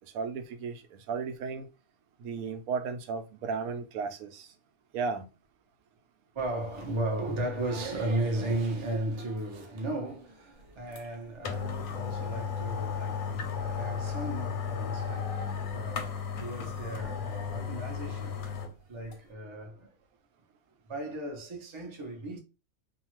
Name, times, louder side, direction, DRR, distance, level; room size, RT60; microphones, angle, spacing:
voice 1, 0.1-1.7 2.2-4.5 4.9-5.3, right 5 dB, 90° right, 1.0 m, -34 dB
voice 2, 6.3-18.5 18.9-20.0 20.9-22.4, right 1 dB, 35° right, 0.5 m, -35 dB
sound 1, 11.0-11.1 11.4-18.7 19.1-19.2, left 6 dB, 90° left, 1.1 m, -34 dB
2.7 x 2.3 x 2.9 m
omnidirectional pair, 1.5 m